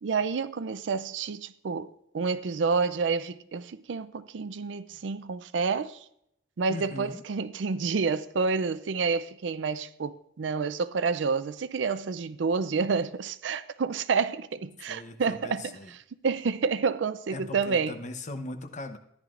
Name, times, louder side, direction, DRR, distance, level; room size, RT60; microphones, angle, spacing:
voice 1, 0.0-6.0 6.6-16.0 16.2-18.0, right 5 dB, 80° right, 0.5 m, -29 dB
voice 2, 6.7-7.2 14.9-15.9 17.3-19.0, left 2 dB, 40° left, 0.8 m, -39 dB
14.0 x 10.5 x 2.5 m
head